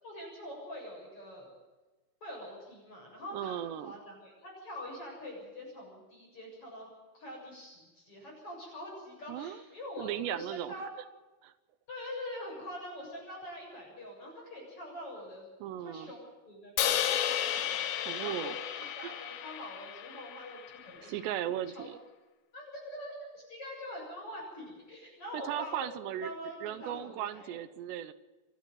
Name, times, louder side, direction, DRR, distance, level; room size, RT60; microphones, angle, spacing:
voice 1, 0.0-1.5 2.2-6.9 7.1-10.9 11.9-15.5 15.8-21.3 21.7-21.9 22.5-25.9 26.2-27.5, left 1 dB, 30° left, -1 dB, 7.9 m, -44 dB
voice 2, 3.3-3.9 9.3-9.6 10.0-10.9 11.4-11.5 15.6-16.1 18.1-18.6 19.0-19.1 21.0-22.0 25.3-26.3 26.6-28.1, right 11 dB, 80° right, 12 dB, 3.0 m, -37 dB
Crash cymbal, 16.8-21.0, left 11 dB, 85° left, 3.5 m, -33 dB
28.5 x 11.5 x 9.1 m, 1.2 s
omnidirectional pair, 5.1 m